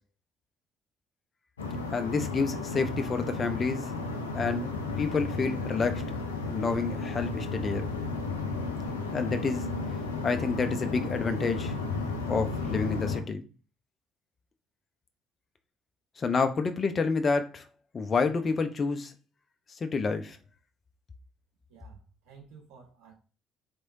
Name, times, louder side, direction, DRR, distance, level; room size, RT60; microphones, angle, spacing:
sound 1, 1.6-13.2, left 3 dB, 85° left, 0.5 m, -33 dB
voice 1, 1.9-3.8 4.3-4.7 5.0-6.0 6.5-7.9 9.1-9.6 10.2-11.7 12.3-13.4 16.2-17.6 17.9-19.1 19.8-20.4, left 4 dB, 35° left, 0.8 m, -28 dB
voice 2, 21.7-23.1, right 6 dB, 70° right, 1.5 m, -53 dB
4.5 x 3.3 x 2.7 m
figure-of-eight pair, 50°, 0 cm